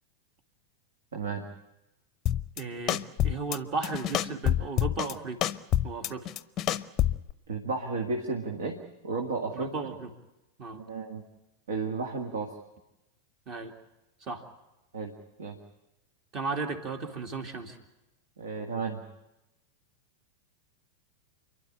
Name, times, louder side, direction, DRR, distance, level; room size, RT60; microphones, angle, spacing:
voice 1, 1.1-1.5 7.5-9.7 10.7-11.2 11.7-12.6 14.9-15.6 18.4-19.1, right 4 dB, 65° right, 2 dB, 2.0 m, -33 dB
sound 1, 2.3-2.6 2.9-3.6 3.8-5.1 5.4-7.3, left 12 dB, 30° left, 0.7 m, -27 dB
voice 2, 2.6-5.5 5.8-6.3 9.5-10.1 10.6-10.8 13.5-13.7 14.2-14.5 16.3-17.8, right 4 dB, 35° right, 6 dB, 2.4 m, -35 dB
29.0 x 11.5 x 9.9 m, 0.99 s
figure-of-eight pair, 90°, 0 cm